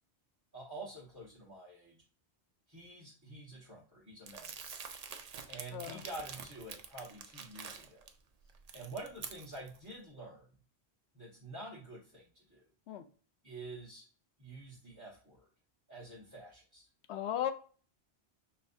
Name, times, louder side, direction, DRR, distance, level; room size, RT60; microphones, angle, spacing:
voice 1, 0.5-2.0 2.7-4.5 5.5-8.1 8.7-10.4 11.1-12.6 13.4-14.0 14.4-15.4 15.9-16.9, right 2 dB, 15° right, -8 dB, 1.5 m, -48 dB
Crumpling crinkling, 4.3-8.1 8.5-9.8, right 6 dB, 50° right, 0.5 m, -47 dB
voice 2, 5.7-6.0 12.9-13.0 17.1-17.5, left 10 dB, 80° left, 8 dB, 0.9 m, -35 dB
5.5 x 3.2 x 2.6 m, 0.40 s
omnidirectional pair, 1.1 m